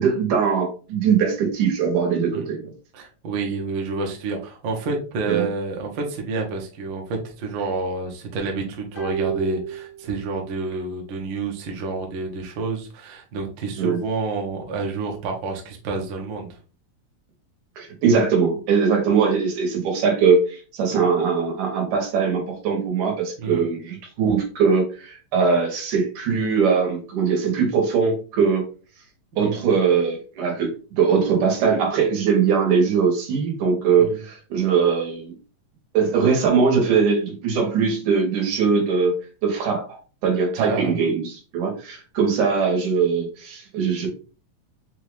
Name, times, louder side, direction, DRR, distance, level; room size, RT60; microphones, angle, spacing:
voice 1, 0.0-2.6 5.3-5.4 13.8-14.0 17.8-28.7 29.4-30.7 31.0-35.3 35.9-44.1, right 5 dB, 80° right, 2 dB, 2.7 m, -21 dB
voice 2, 2.9-16.6 23.4-23.6 29.4-29.6 34.0-34.2 40.6-40.9, right 3 dB, 65° right, 1 dB, 1.2 m, -29 dB
sound 1, 9.0-10.6 10.9-11.0, right 8 dB, 70° left, 1.0 m, -31 dB
5.7 x 2.4 x 3.1 m, 0.36 s
omnidirectional pair, 3.4 m